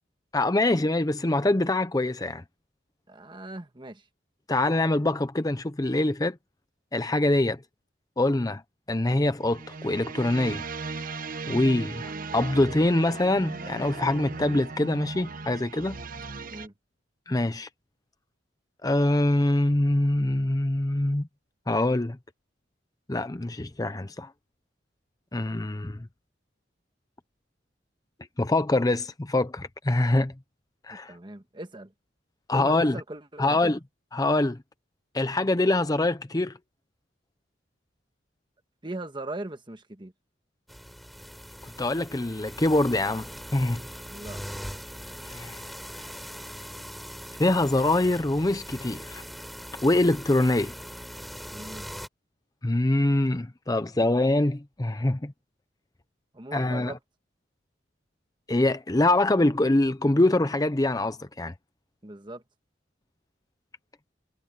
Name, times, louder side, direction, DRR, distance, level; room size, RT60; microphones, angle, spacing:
voice 1, 0.3-2.4 4.5-6.4 6.9-7.6 8.2-8.6 8.9-10.6 11.5-16.0 17.3-17.7 18.8-21.3 21.7-22.2 23.1-24.3 25.3-26.1 28.4-30.3 30.9-31.1 32.5-33.0 33.4-33.8 34.1-34.6 35.1-36.5 41.6-43.8 45.2-45.6 47.4-49.2 49.8-50.7 52.6-55.3 56.5-56.9 58.5-61.5, left 2 dB, 20° left, 0.6 m, -24 dB
voice 2, 3.1-4.0 16.5-16.7 30.9-31.9 32.5-33.8 38.8-40.1 44.1-44.8 51.5-51.9 56.3-57.0 62.0-62.4, right 2 dB, 25° right, 1.4 m, -40 dB
sound 1, 9.4-16.7, right 4 dB, 45° right, 1.1 m, -37 dB
sound 2, 40.7-52.1, equal, ahead, 3.8 m, -41 dB
head